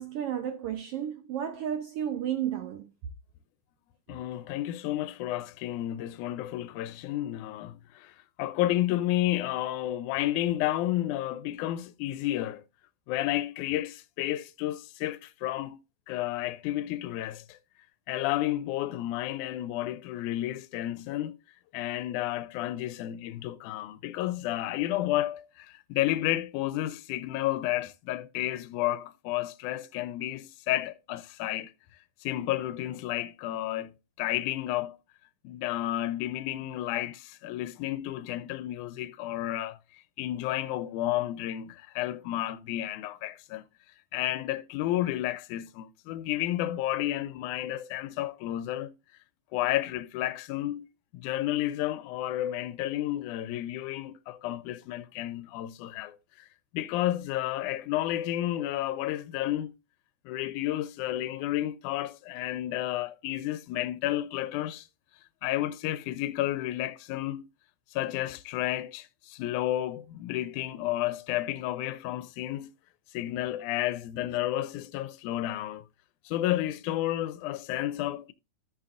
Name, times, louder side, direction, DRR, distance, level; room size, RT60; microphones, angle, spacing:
voice 1, 0.0-2.9, right 10 dB, 75° right, 1.3 m, -32 dB
voice 2, 4.1-12.6 13.1-15.8 16.1-17.6 18.1-21.4 21.7-31.7 32.2-35.0 35.4-43.6 44.1-49.0 49.5-50.9 51.1-56.5 56.7-59.7 60.3-64.9 65.4-67.5 67.9-72.7 73.1-75.8 76.3-78.3, left 14 dB, 85° left, 2.0 m, -31 dB
14.0 x 6.1 x 2.4 m
omnidirectional pair, 3.5 m